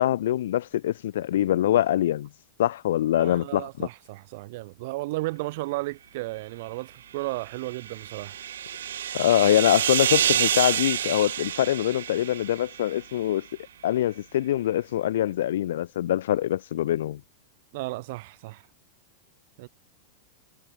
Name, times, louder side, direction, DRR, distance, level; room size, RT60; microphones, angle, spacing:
voice 1, 0.0-2.3 2.6-3.9 9.1-13.5 13.8-17.2, left 12 dB, 75° left, 0.7 m, -24 dB
voice 2, 3.2-8.4 17.7-18.6 19.6-19.7, right 21 dB, 60° right, 1.2 m, -34 dB
sound 1, 7.4-13.0, right 10 dB, 85° right, 0.4 m, -28 dB
hypercardioid pair, 125°, 0 cm